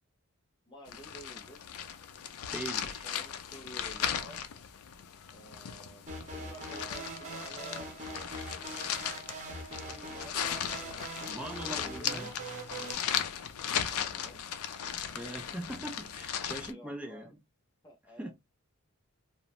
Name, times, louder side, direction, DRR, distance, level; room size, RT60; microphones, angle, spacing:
voice 1, 0.7-1.8 3.0-4.6 5.3-7.9 9.9-10.3 10.7-12.3 13.9-14.5 16.7-17.3 17.8-18.3, equal, 20° left, 0.7 m, -51 dB
sound 1, 0.9-16.7, left 9 dB, 75° left, 0.4 m, -37 dB
voice 2, 2.5-3.0 11.3-12.3 15.1-17.4 18.2-18.3, right 1 dB, 5° right, 0.3 m, -41 dB
sound 2, 6.1-12.9, right 2 dB, 30° right, 0.7 m, -42 dB
2.6 x 2.0 x 2.9 m
head